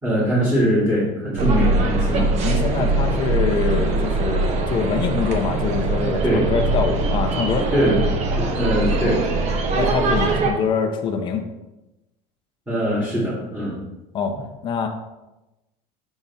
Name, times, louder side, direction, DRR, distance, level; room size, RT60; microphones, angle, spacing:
voice 1, 0.0-2.2 6.2-6.5 7.7-8.0 8.3-9.2 12.7-13.7, equal, 5° right, -9 dB, 2.7 m, -21 dB
sound 1, 1.4-10.5, right 2 dB, 40° right, 1.1 m, -22 dB
voice 2, 2.1-7.7 9.8-11.4 14.1-14.3 14.6-14.9, left 5 dB, 30° left, 4 dB, 0.8 m, -24 dB
7.4 x 6.0 x 4.2 m, 0.99 s
cardioid pair, 160°, 17 cm